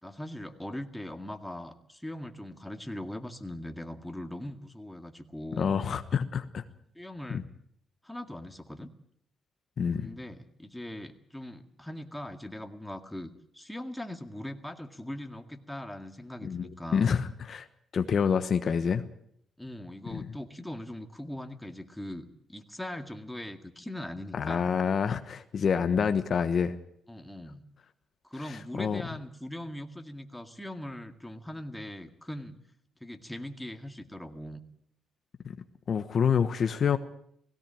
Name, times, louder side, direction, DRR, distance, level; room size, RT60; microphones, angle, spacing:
voice 1, 0.0-5.8 7.0-7.5 8.0-8.9 10.0-17.1 19.6-24.7 27.1-27.6 28.2-32.6 33.0-34.6, left 1 dB, 5° left, 6 dB, 2.0 m, -40 dB
voice 2, 5.6-6.6 7.3-7.4 9.8-10.1 16.4-17.7 17.9-19.0 20.1-20.3 24.3-26.8 28.5-29.0 35.4-35.5 35.9-37.0, left 7 dB, 55° left, 9 dB, 1.2 m, -27 dB
17.5 x 17.0 x 8.9 m, 0.69 s
supercardioid pair, 70°, 0 cm